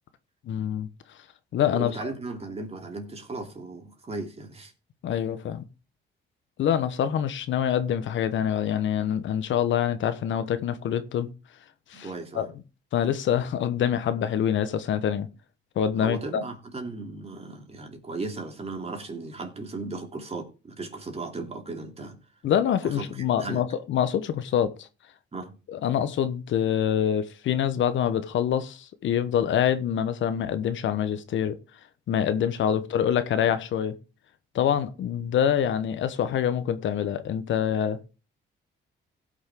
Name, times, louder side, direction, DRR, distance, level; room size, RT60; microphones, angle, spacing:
voice 1, 0.5-0.9 1.5-1.9 5.0-5.6 6.6-11.3 11.9-12.1 12.3-12.5 12.9-15.3 15.8-16.4 22.4-24.9 25.7-31.6 32.1-34.0 34.5-38.0, left 9 dB, 70° left, 1.2 m, -25 dB
voice 2, 1.7-4.7 11.9-12.5 16.0-22.2 22.8-23.7 25.3-25.6, right 3 dB, 30° right, 3.0 m, -36 dB
16.5 x 6.3 x 3.8 m
cardioid pair, 90°, 20 cm